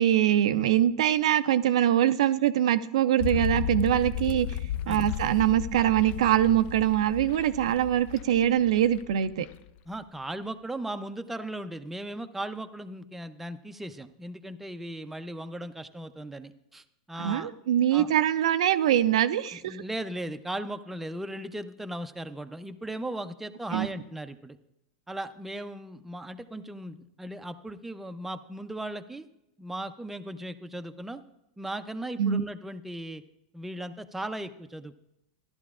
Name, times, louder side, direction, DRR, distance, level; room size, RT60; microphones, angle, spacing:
voice 1, 0.0-4.6 4.9-9.5 17.2-19.8 23.7-23.9 32.2-32.4, right 11 dB, 75° right, 11 dB, 0.4 m, -23 dB
sound 1, 3.2-9.7 9.9-10.0, left 11 dB, 45° left, 0.4 m, -34 dB
voice 2, 9.9-17.5 17.9-18.1 19.5-24.6 25.1-29.3 29.6-31.2 31.6-33.2 33.5-35.0, right 1 dB, 5° right, 8 dB, 0.5 m, -37 dB
14.0 x 11.0 x 2.4 m, 0.85 s
hypercardioid pair, 110°, 3 cm